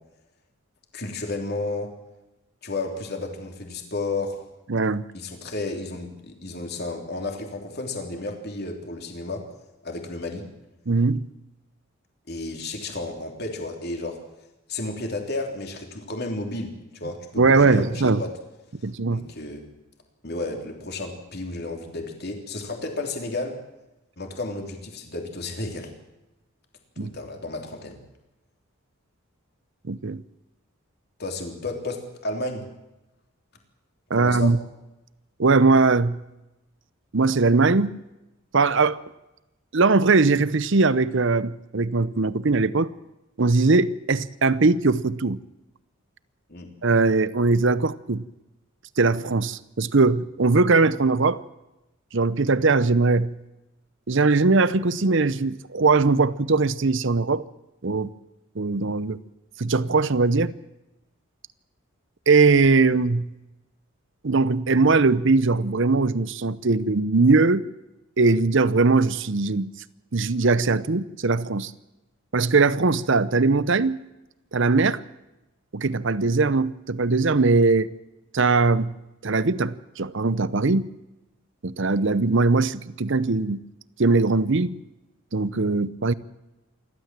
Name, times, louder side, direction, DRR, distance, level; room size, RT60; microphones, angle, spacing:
voice 1, 0.9-1.9 2.6-4.4 5.1-9.4 9.8-10.5 12.3-14.2 14.7-18.3 19.1-19.6 20.2-23.6 24.2-25.9 27.0-28.0 31.2-32.7 34.1-34.5 46.5-46.7, left 2 dB, 50° left, 3.3 m, -32 dB
voice 2, 4.7-5.0 10.9-11.3 17.4-18.2 18.8-19.3 27.0-27.1 29.9-30.2 34.1-34.6 35.4-36.2 37.1-38.0 38.5-39.0 39.7-42.9 43.4-45.4 46.8-48.3 49.0-51.4 52.1-53.3 54.1-57.4 57.8-58.1 58.6-59.2 59.6-60.5 62.3-63.3 64.2-67.6 68.2-69.7 70.1-71.7 72.3-74.0 74.5-75.0 75.7-77.9 78.3-79.0 79.2-80.9 81.6-83.6 84.0-84.8 85.3-86.1, right 3 dB, 60° right, 0.8 m, -20 dB
28.0 x 12.5 x 7.5 m
head